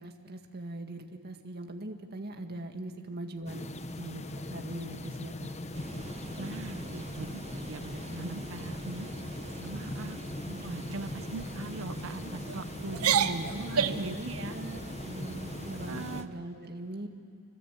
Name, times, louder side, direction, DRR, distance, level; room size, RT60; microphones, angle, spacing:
voice 1, 0.0-5.5 13.0-13.6 13.9-17.1, right 1 dB, 45° right, 4 dB, 1.9 m, -41 dB
sound 1, 3.5-16.2, left 1 dB, 30° left, 1.1 m, -40 dB
sound 2, 5.7-16.3, right 3 dB, 30° right, 0.7 m, -45 dB
voice 2, 6.4-8.8 9.7-10.2 10.6-14.6 15.9-16.3, right 2 dB, 65° right, 10 dB, 1.1 m, -40 dB
sound 3, 7.2-7.8 8.2-8.5 8.8-9.1 9.5-9.8 10.5-10.8 11.3-11.5 12.2-12.6 12.9-14.1, right 7 dB, 85° right, 0.8 m, -31 dB
28.5 x 24.5 x 8.3 m, 2.4 s
head